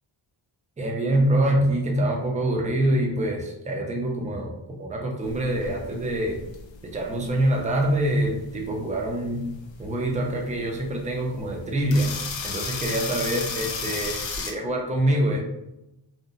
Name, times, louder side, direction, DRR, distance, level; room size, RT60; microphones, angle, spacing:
voice 1, 0.8-6.4 6.8-9.5 9.8-12.2 12.4-15.4, right 1 dB, 15° right, 0 dB, 0.4 m, -25 dB
sound 1, 5.2-14.5, left 4 dB, 70° left, 0.5 m, -34 dB
2.8 x 2.0 x 2.4 m, 0.89 s
wide cardioid pair, 100°, 48 cm